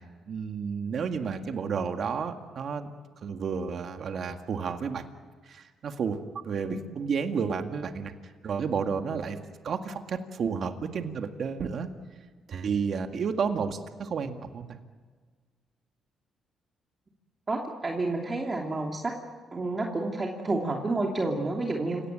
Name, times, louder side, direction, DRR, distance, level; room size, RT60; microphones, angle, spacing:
voice 1, 0.3-2.9 3.2-5.0 5.5-8.1 8.4-9.4 9.6-11.9 12.5-14.8, right 6 dB, 60° right, 6 dB, 1.9 m, -31 dB
voice 2, 17.5-19.1 19.5-22.0, right 2 dB, 30° right, 0 dB, 2.9 m, -29 dB
29.0 x 18.0 x 9.1 m, 1.5 s
cardioid pair, 90°, 0 cm